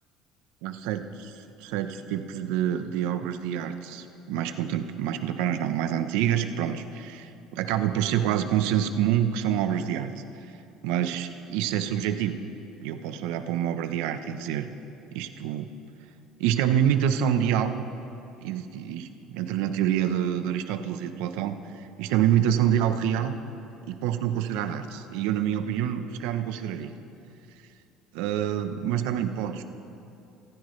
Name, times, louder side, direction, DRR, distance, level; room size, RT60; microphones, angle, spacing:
voice 1, 0.6-1.3 1.6-10.1 10.8-12.4 12.8-14.7 15.1-15.7 16.4-17.8 18.4-23.4 23.9-26.9 28.1-29.6, right 10 dB, 80° right, 9 dB, 0.8 m, -27 dB
25.0 x 15.0 x 3.3 m, 2.8 s
cardioid pair, 175°, 0 cm